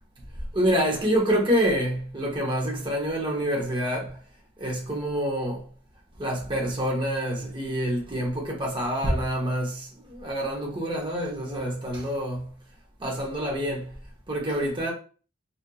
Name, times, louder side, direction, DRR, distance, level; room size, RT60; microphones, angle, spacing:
voice 1, 0.5-4.2 4.6-5.6 6.2-12.5 13.0-13.9 14.3-14.9, equal, 25° right, 0.7 m, -27 dB
2.8 x 2.4 x 2.2 m
head